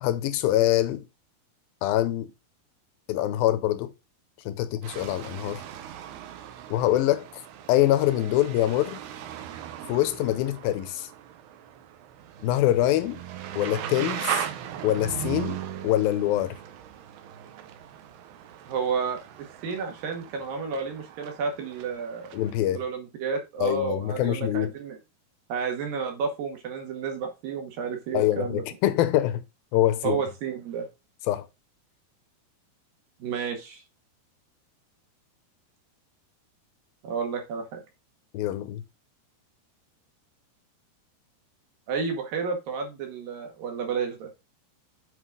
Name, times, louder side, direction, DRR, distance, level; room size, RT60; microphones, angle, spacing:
voice 1, 0.0-1.0 1.8-2.3 3.1-3.9 4.5-5.6 6.7-7.3 7.7-9.0 9.9-11.1 12.4-13.2 13.6-14.5 14.8-16.6 22.3-22.8 23.6-24.7 28.1-29.4 29.7-30.2 31.3-31.4 38.3-38.8, left 13 dB, 80° left, 2.3 m, -24 dB
sound 1, 4.8-22.6, right 10 dB, 80° right, 3.0 m, -38 dB
voice 2, 18.7-22.3 22.7-25.0 25.5-28.6 30.0-30.9 33.2-33.8 37.0-37.8 41.9-44.3, right 5 dB, 60° right, 3.5 m, -31 dB
8.1 x 5.7 x 3.8 m
omnidirectional pair, 4.7 m